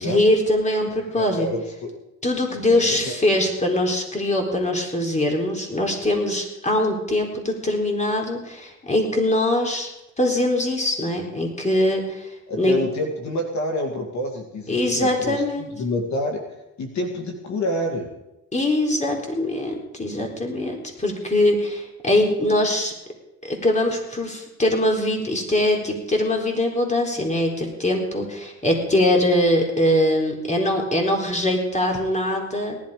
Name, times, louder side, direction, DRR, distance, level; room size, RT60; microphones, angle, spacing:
voice 1, 0.0-1.5 2.2-9.9 10.2-12.3 12.6-12.8 14.7-15.7 18.5-22.9 23.4-32.8, left 1 dB, 25° left, 1 dB, 4.0 m, -22 dB
voice 2, 0.8-1.9 2.5-3.2 12.5-15.4 15.7-16.4 16.8-18.1, left 1 dB, 65° left, 3 dB, 2.3 m, -28 dB
18.5 x 11.5 x 5.0 m, 0.92 s
cardioid pair, 90°, 30 cm